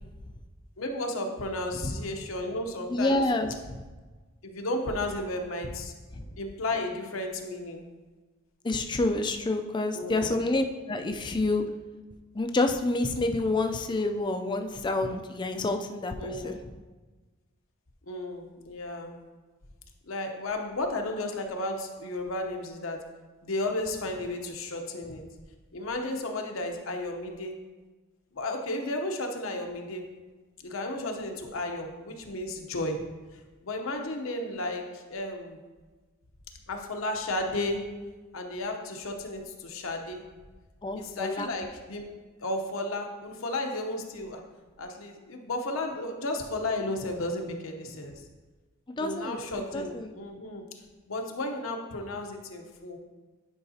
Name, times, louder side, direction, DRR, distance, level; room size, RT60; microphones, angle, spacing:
voice 1, 0.8-3.2 4.4-5.9 6.4-7.8 9.9-10.4 16.2-16.6 18.1-19.2 20.1-23.0 23.4-25.2 25.7-27.5 28.3-30.0 30.6-33.1 33.3-35.6 36.7-37.8 38.3-40.2 40.9-42.1 42.4-44.4 44.8-48.2 49.0-50.6 51.1-53.0, left 2 dB, 80° left, 3 dB, 0.9 m, -33 dB
voice 2, 2.9-3.8 6.1-6.2 8.6-11.6 12.3-16.7 40.8-41.5 49.0-50.1, left 2 dB, 20° left, 6 dB, 0.4 m, -28 dB
9.7 x 4.7 x 2.8 m, 1.3 s
head